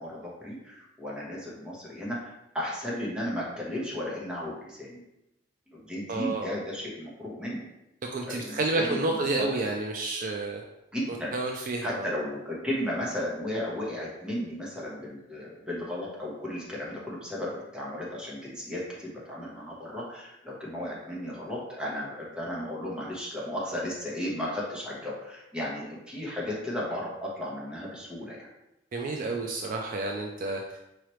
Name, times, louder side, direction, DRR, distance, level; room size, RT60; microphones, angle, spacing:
voice 1, 0.0-5.0 5.7-7.7 8.3-9.6 10.9-11.4 11.8-28.5, left 1 dB, 5° right, -6 dB, 1.1 m, -35 dB
voice 2, 6.1-6.5 8.1-10.6 11.3-12.1 28.9-30.6, right 2 dB, 45° right, 1 dB, 0.4 m, -30 dB
4.8 x 3.1 x 3.1 m, 0.89 s
head